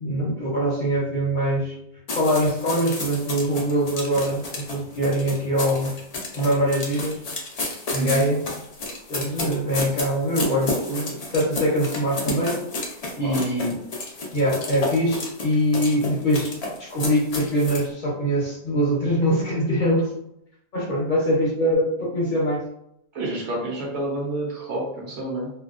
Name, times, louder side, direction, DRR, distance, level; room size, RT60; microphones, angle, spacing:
voice 1, 0.0-1.8 2.1-6.0 6.3-7.2 7.9-8.4 9.1-12.6 13.2-13.8 14.3-16.5 16.8-20.1 20.7-22.6, equal, 50° left, -4 dB, 0.6 m, -23 dB
sound 1, 2.1-17.9, left 2 dB, 90° left, 0.3 m, -31 dB
voice 2, 23.1-25.5, right 1 dB, 70° right, -3 dB, 1.0 m, -29 dB
2.7 x 2.1 x 2.3 m, 0.77 s
omnidirectional pair, 1.4 m